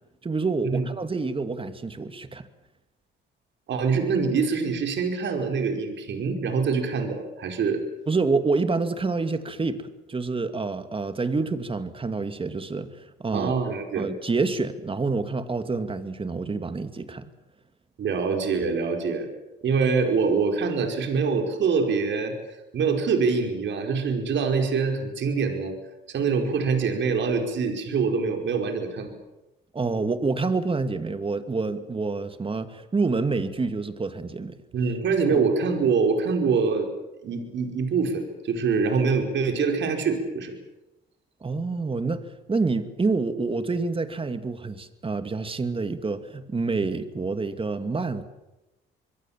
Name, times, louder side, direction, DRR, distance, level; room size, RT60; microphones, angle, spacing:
voice 1, 0.2-2.5 8.1-9.8 10.1-13.5 14.0-17.2 29.7-34.6 35.3-35.4 41.4-42.2 42.5-48.2, right 3 dB, 25° right, 9 dB, 2.4 m, -27 dB
voice 2, 3.7-7.8 13.3-14.1 18.0-19.3 19.6-22.3 22.7-25.7 26.1-29.1 34.7-36.9 37.2-40.5, right 5 dB, 65° right, 4 dB, 5.1 m, -24 dB
26.5 x 22.5 x 7.5 m, 0.97 s
cardioid pair, 90°, 20 cm